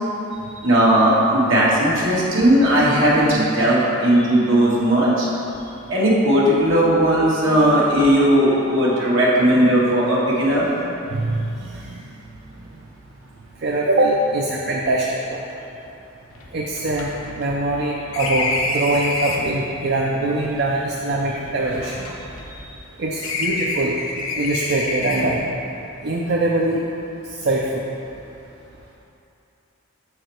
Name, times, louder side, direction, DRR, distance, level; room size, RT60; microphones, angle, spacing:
voice 1, 0.6-5.3 5.9-10.7, right 1 dB, 70° right, -6 dB, 1.6 m, -17 dB
voice 2, 11.1-12.0 13.6-15.4 16.5-22.1 22.5-22.6 23.0-23.9 24.3-25.4 26.0-26.8 27.4-27.8, right 2 dB, 55° right, -3 dB, 0.5 m, -23 dB
sound 1, 15.5-15.6 15.8-15.9 16.3-19.6 20.5-22.9 23.2-25.5, left 2 dB, 80° left, 0.7 m, -28 dB
6.5 x 4.8 x 4.5 m, 2.8 s
head